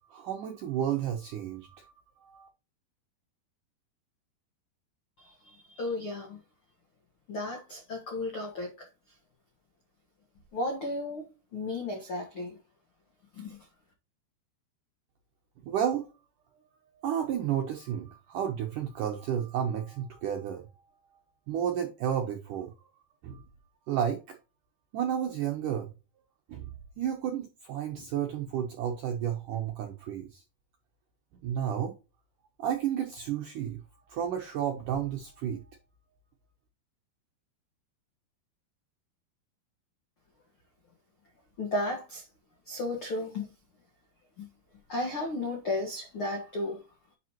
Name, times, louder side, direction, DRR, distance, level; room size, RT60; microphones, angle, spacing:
voice 1, 0.1-1.9 2.2-2.5 15.6-16.1 17.0-20.7 21.5-22.7 23.2-23.4 23.9-24.4 24.9-25.9 26.5-26.7 27.0-30.4 31.4-31.9 32.6-33.8 34.1-35.6, right 9 dB, 75° right, 1.9 m, -32 dB
voice 2, 5.2-6.4 7.3-8.9 10.5-11.3 11.5-12.6 13.3-13.6 41.6-42.2 42.7-43.5 44.4-44.5 44.9-46.8, left 2 dB, 75° left, 1.2 m, -34 dB
10.5 x 5.1 x 2.9 m
omnidirectional pair, 5.1 m